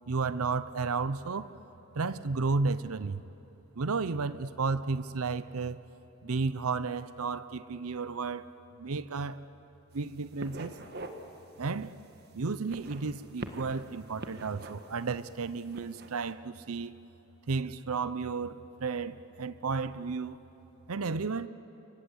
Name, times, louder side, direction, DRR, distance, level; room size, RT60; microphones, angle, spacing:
voice 1, 0.1-1.5 1.9-3.2 3.8-5.8 6.2-8.5 8.8-9.4 9.9-10.8 11.6-11.9 12.3-17.0 17.5-20.4 20.9-21.5, right 4 dB, 80° right, 15 dB, 0.7 m, -33 dB
sound 1, 9.9-10.1 10.4-11.2 11.6-11.8 12.6-13.8 14.2-15.0 15.6-16.1, right 2 dB, 45° right, 1.7 m, -42 dB
28.5 x 24.0 x 8.0 m, 2.9 s
head